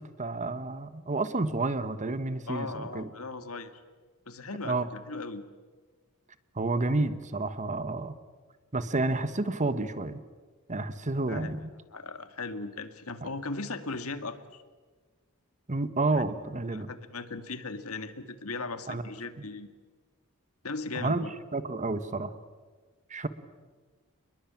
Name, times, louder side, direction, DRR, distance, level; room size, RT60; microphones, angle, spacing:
voice 1, 0.0-3.1 4.6-4.9 6.5-8.2 8.7-10.2 10.7-11.7 13.2-13.3 15.7-16.9 18.9-19.0 19.4-19.5 21.0-21.2 21.5-22.3 23.1-23.3, right 2 dB, 35° right, 13 dB, 1.3 m, -30 dB
voice 2, 2.5-3.8 4.3-5.4 11.3-11.5 11.9-14.6 16.1-16.2 16.7-19.7 20.6-21.3, left 3 dB, 70° left, 10 dB, 1.9 m, -38 dB
28.5 x 21.5 x 8.8 m, 1.4 s
head